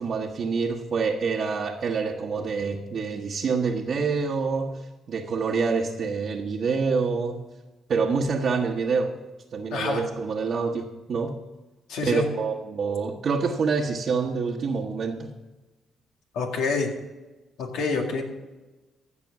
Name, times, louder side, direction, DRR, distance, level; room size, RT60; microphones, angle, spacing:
voice 1, 0.0-7.4 7.9-9.2 9.5-11.4 12.1-15.3, right 5 dB, 55° right, -2 dB, 1.1 m, -26 dB
voice 2, 9.7-10.0 11.9-12.3 16.3-16.9 17.6-18.2, left 4 dB, 85° left, 2 dB, 2.2 m, -27 dB
15.5 x 6.1 x 5.9 m, 1.1 s
cardioid pair, 90°, 0 cm